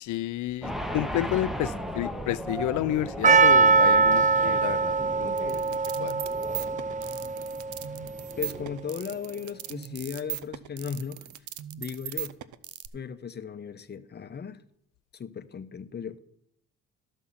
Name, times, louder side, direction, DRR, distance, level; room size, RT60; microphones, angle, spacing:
voice 1, 0.0-6.1, left 14 dB, 75° left, 17 dB, 0.6 m, -31 dB
sound 1, 0.6-8.7, equal, ahead, 0.9 m, -37 dB
Percussion, 3.2-8.2, right 4 dB, 25° right, 0.4 m, -22 dB
sound 2, 5.4-12.9, right 14 dB, 75° right, 0.7 m, -38 dB
voice 2, 8.4-11.2 11.8-12.4 12.9-14.6 15.1-16.2, left 6 dB, 35° left, 11 dB, 0.8 m, -36 dB
13.0 x 6.3 x 5.6 m, 0.75 s
cardioid pair, 90°, 30 cm